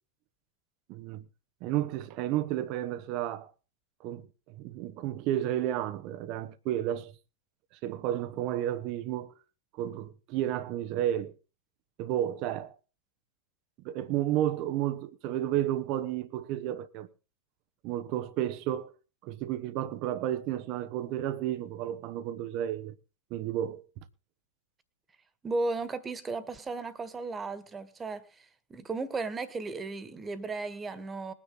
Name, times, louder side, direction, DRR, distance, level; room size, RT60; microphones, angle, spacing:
voice 1, 0.9-1.2 1.6-3.5 4.0-7.1 7.8-9.3 9.8-11.3 12.0-12.8 13.8-17.1 17.8-18.9 19.2-22.9 23.3-23.8, right 12 dB, 40° right, 1.1 m, -32 dB
voice 2, 25.4-31.3, right 3 dB, 15° right, 1.8 m, -35 dB
21.0 x 10.0 x 4.0 m
figure-of-eight pair, 90°, 0 cm